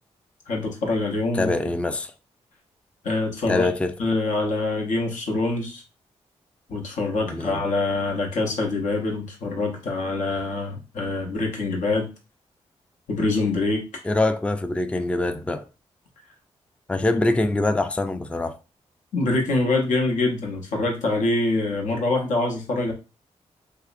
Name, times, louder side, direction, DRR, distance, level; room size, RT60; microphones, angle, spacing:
voice 1, 0.5-1.5 3.0-3.7 4.0-5.8 6.7-12.1 13.1-13.8 19.1-22.9, left 2 dB, 75° left, 0.8 m, -25 dB
voice 2, 1.3-2.1 3.5-3.9 7.3-7.6 14.0-15.6 16.9-18.6, left 2 dB, 10° left, 0.3 m, -24 dB
2.7 x 2.0 x 2.4 m
supercardioid pair, 45°, 13 cm